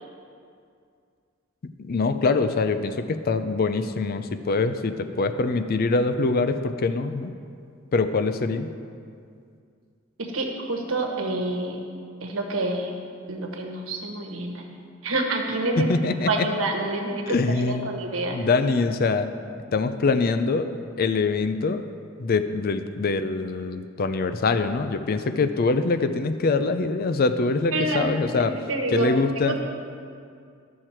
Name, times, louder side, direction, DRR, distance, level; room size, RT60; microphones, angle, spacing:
voice 1, 1.8-7.3 7.9-8.7 15.8-16.5 17.3-18.0 18.3-19.3 19.7-20.7 21.0-21.8 22.2-28.6 28.9-29.6, left 3 dB, 50° left, 10 dB, 0.5 m, -24 dB
voice 2, 10.2-11.8 12.2-13.0 13.3-15.9 16.3-18.4 27.7-28.1 28.4-29.1 29.4-29.6, right 2 dB, 85° right, 1 dB, 1.2 m, -28 dB
12.5 x 6.4 x 4.4 m, 2.3 s
head